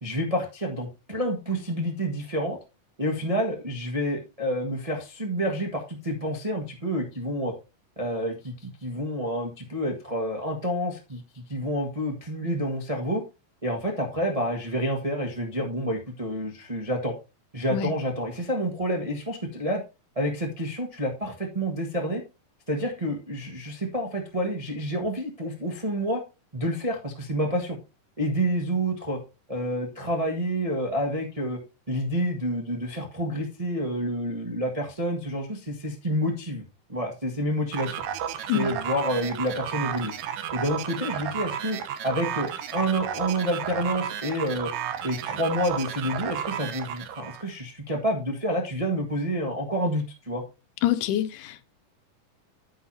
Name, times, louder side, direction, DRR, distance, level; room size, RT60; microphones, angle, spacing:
voice 1, 0.0-2.6 3.0-7.5 8.0-13.2 13.6-17.1 17.5-19.8 20.1-22.2 22.7-26.2 26.5-27.8 28.2-29.2 29.5-31.6 31.9-36.6 36.9-37.9 38.5-40.1 40.5-44.7 45.0-50.4, equal, 70° right, 0.3 m, -28 dB
sound 1, 37.7-47.5, right 9 dB, 85° right, 2.6 m, -33 dB
voice 2, 50.8-51.6, left 12 dB, 85° left, 2.3 m, -26 dB
9.5 x 9.4 x 2.7 m
omnidirectional pair, 3.7 m